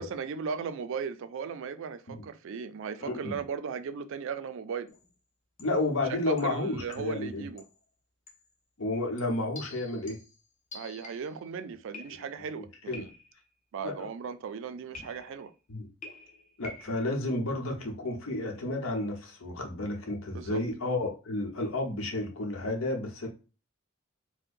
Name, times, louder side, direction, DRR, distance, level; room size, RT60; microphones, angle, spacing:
voice 1, 0.0-4.9 6.3-7.6 10.7-13.1 13.7-15.5 20.3-20.6, right 6 dB, 65° right, 0.3 m, -37 dB
voice 2, 3.0-3.4 5.6-7.4 8.8-10.2 12.1-12.2 12.6-13.0 13.8-14.1 15.7-15.9 16.6-23.3, left 2 dB, 75° left, 0.9 m, -32 dB
sound 1, 4.9-5.1 5.6-5.9 6.4-7.3 7.6-7.8 8.3-8.5 9.2-11.4 11.9-12.5 12.9-13.5 14.9-15.5 16.0-17.1, left 2 dB, 35° left, 0.7 m, -48 dB
4.4 x 2.1 x 2.5 m
head